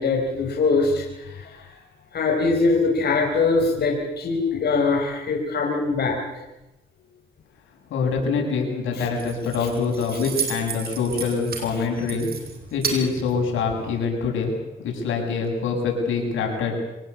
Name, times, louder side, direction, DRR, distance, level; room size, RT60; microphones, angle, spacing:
voice 1, 0.0-1.7 2.1-6.4 8.9-9.1, left 3 dB, 55° left, 1 dB, 4.4 m, -22 dB
voice 2, 7.9-12.3 12.7-14.5 14.8-16.7, left 5 dB, 80° left, 1 dB, 7.8 m, -25 dB
Keys jangling, 8.9-14.0, right 6 dB, 50° right, 5.7 m, -33 dB
25.5 x 18.5 x 8.5 m, 0.97 s
cardioid pair, 90°, 20 cm